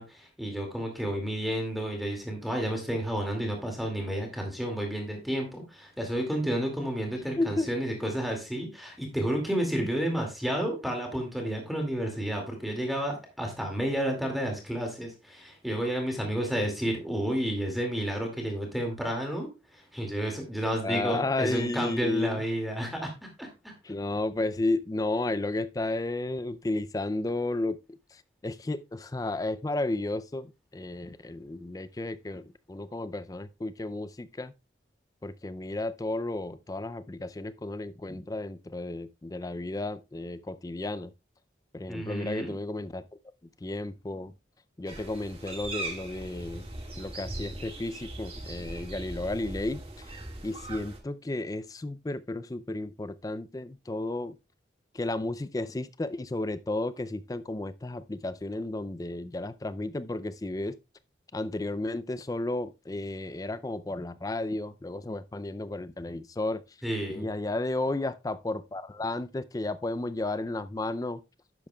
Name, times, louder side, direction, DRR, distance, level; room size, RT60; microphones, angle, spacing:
voice 1, 0.0-19.5 19.7-23.7 41.9-42.5 66.8-67.3, right 1 dB, ahead, 2.2 m, -31 dB
voice 2, 7.4-7.7 9.8-9.9 20.8-22.4 23.8-34.5 35.2-41.1 41.7-43.1 43.6-44.3 44.8-46.6 47.0-50.2 50.4-54.4 54.9-60.8 61.3-66.8 67.1-71.2, left 2 dB, 20° left, 0.4 m, -33 dB
sound 1, 44.9-51.0, right 1 dB, 30° right, 1.8 m, -39 dB
11.0 x 8.6 x 2.3 m
head